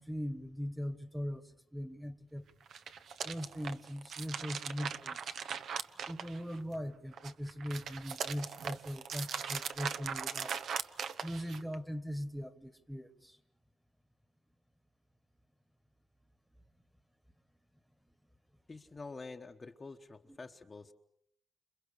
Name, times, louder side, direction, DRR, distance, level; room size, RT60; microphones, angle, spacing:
voice 1, 0.0-2.4 3.2-5.4 6.1-10.5 11.2-13.4, equal, ahead, 1.5 m, -40 dB
sound 1, 2.6-6.7 7.1-11.7, right 7 dB, 70° right, 1.0 m, -40 dB
voice 2, 18.7-20.9, left 3 dB, 25° left, 1.1 m, -47 dB
30.0 x 27.5 x 6.6 m
cardioid pair, 130°, 0 cm